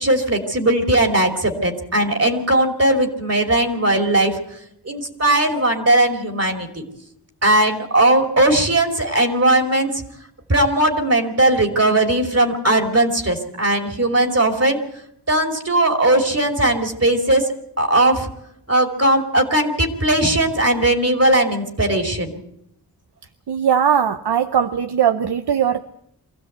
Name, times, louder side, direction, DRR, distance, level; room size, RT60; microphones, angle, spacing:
voice 1, 0.0-4.4 4.8-6.8 7.4-10.0 10.5-14.8 15.3-18.3 18.7-22.4, right 1 dB, 40° right, 4 dB, 3.0 m, -18 dB
voice 2, 23.5-25.9, right 8 dB, 85° right, 9 dB, 0.8 m, -19 dB
24.0 x 15.5 x 8.1 m, 0.76 s
wide cardioid pair, 75°, 39 cm